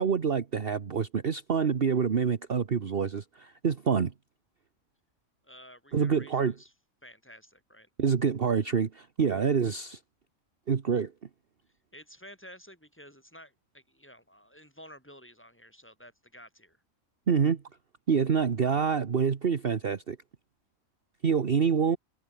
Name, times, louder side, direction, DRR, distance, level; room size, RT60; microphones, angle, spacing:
voice 1, 0.0-4.1 5.9-6.5 8.0-10.0 10.7-11.1 17.3-17.6 18.1-20.2 21.2-22.0, right 6 dB, 45° right, 1.3 m, -26 dB
voice 2, 5.4-6.7 7.0-7.9 11.9-16.8, equal, 10° left, 7.1 m, -52 dB
omnidirectional pair, 1.4 m